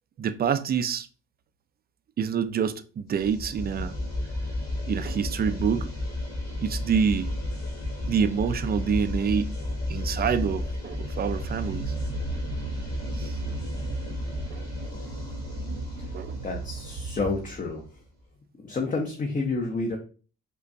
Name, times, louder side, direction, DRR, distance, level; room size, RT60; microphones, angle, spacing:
voice 1, 0.2-1.1 2.2-3.9 4.9-5.9 6.6-7.3 8.1-11.9 13.2-13.3 14.5-14.6 16.1-16.4, right 7 dB, 35° right, 0.4 m, -27 dB
sound 1, 3.1-17.9, left 1 dB, 60° left, 1.9 m, -33 dB
sound 2, 11.2-17.8, right 6 dB, 80° right, 0.6 m, -37 dB
voice 2, 16.4-17.8 18.6-20.0, left 3 dB, 25° left, 0.6 m, -29 dB
5.2 x 2.1 x 2.6 m
cardioid pair, 90°, 30 cm